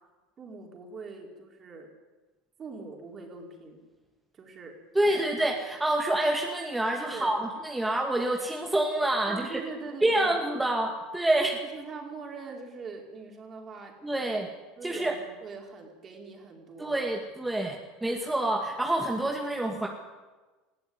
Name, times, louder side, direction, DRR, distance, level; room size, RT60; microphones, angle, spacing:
voice 1, 0.4-1.9 2.6-3.8 4.3-4.8 5.0-5.2 7.1-7.4 9.2-10.3 11.6-14.4 14.8-17.0, right 4 dB, 35° right, 2 dB, 5.2 m, -42 dB
voice 2, 4.9-9.6 10.0-11.6 14.0-14.5 14.8-15.1 16.8-19.9, right 1 dB, 10° right, 1 dB, 2.3 m, -27 dB
20.0 x 14.5 x 9.8 m, 1.2 s
hypercardioid pair, 95°, 0 cm